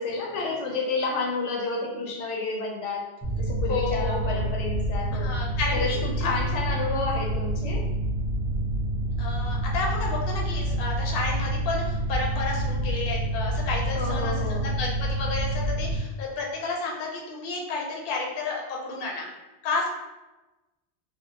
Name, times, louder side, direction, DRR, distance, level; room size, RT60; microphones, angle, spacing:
voice 1, 0.0-3.0 3.4-5.4 5.7-7.8 13.9-14.7, left 3 dB, 90° left, -1 dB, 0.9 m, -30 dB
Mechanical fan, 3.2-16.0, right 1 dB, 10° right, 0.5 m, -28 dB
voice 2, 3.7-4.4 5.1-6.3 9.2-19.3 19.6-19.9, left 3 dB, 65° left, -1 dB, 0.7 m, -31 dB
2.6 x 2.0 x 2.7 m, 1.1 s
omnidirectional pair, 1.2 m